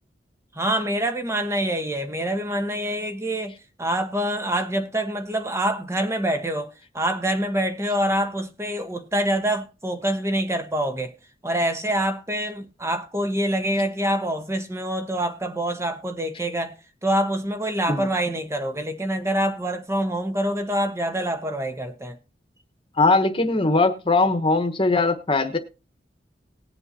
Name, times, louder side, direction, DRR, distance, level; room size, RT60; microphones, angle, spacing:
voice 1, 0.5-11.1 11.4-16.7 17.0-22.2, right 1 dB, 15° right, 1.2 m, -26 dB
voice 2, 23.0-25.6, left 3 dB, 30° left, 1.3 m, -20 dB
19.5 x 7.8 x 2.8 m
head